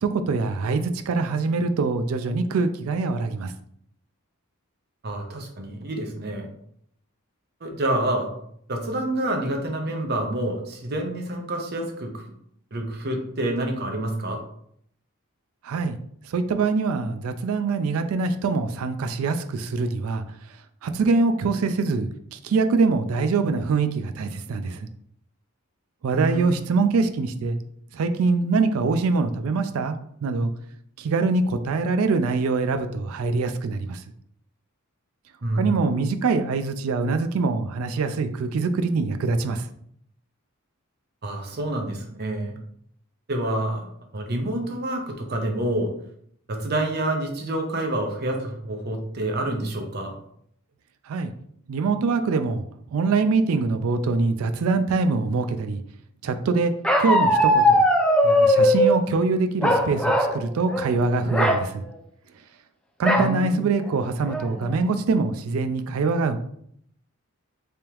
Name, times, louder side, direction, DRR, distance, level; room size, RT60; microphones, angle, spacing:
voice 1, 0.0-3.5 15.6-16.0 16.2-20.6 20.8-24.9 26.0-27.6 27.9-30.5 31.0-34.0 35.5-39.7 51.1-51.3 51.7-52.6 52.9-55.8 56.2-56.7 57.0-57.8 58.2-61.8 63.0-66.4, right 4 dB, 70° right, 9 dB, 0.3 m, -24 dB
voice 2, 5.0-6.5 7.6-8.3 8.7-12.2 12.7-14.4 26.1-26.7 35.4-35.9 41.2-42.5 43.3-45.9 46.5-50.2 63.2-63.6, right 1 dB, 45° right, 3 dB, 0.7 m, -28 dB
Bark, 56.8-59.0 59.6-60.4 60.7-60.9 61.3-61.6 63.0-63.3 63.9-64.0 64.3-64.7, equal, 5° left, 0.4 m, -19 dB
3.5 x 3.4 x 2.9 m, 0.67 s
head